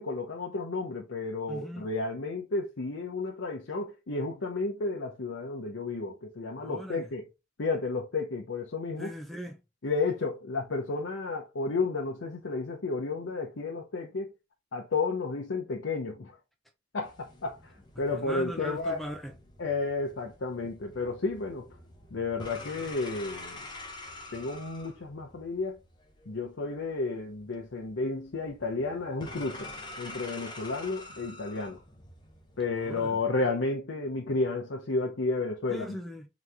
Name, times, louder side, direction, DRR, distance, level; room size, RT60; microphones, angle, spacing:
voice 1, 0.0-7.2 7.6-9.1 9.8-14.3 14.7-16.3 16.9-17.6 18.0-19.0 19.6-21.7 22.1-23.6 24.3-25.8 26.3-29.7 30.0-31.8 32.6-35.9, left 3 dB, 85° left, 0.7 m, -32 dB
voice 2, 1.5-1.9 6.6-7.1 9.0-9.6 18.1-19.3 32.7-33.2 35.7-36.3, equal, ahead, 0.5 m, -39 dB
sound 1, 17.0-33.2, left 2 dB, 25° left, 0.8 m, -47 dB
3.8 x 3.1 x 3.4 m
head